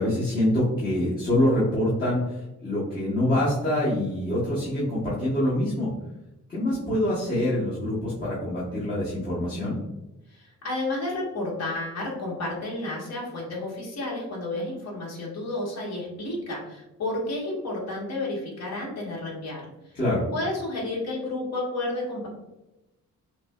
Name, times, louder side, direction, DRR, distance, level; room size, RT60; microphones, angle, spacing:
voice 1, 0.0-5.9 6.5-9.8 19.9-20.2, left 1 dB, 30° left, -9 dB, 1.2 m, -25 dB
voice 2, 10.3-20.0 20.3-22.3, left 2 dB, 55° left, -4 dB, 1.5 m, -31 dB
5.8 x 2.2 x 2.3 m, 0.94 s
wide cardioid pair, 160°, 31 cm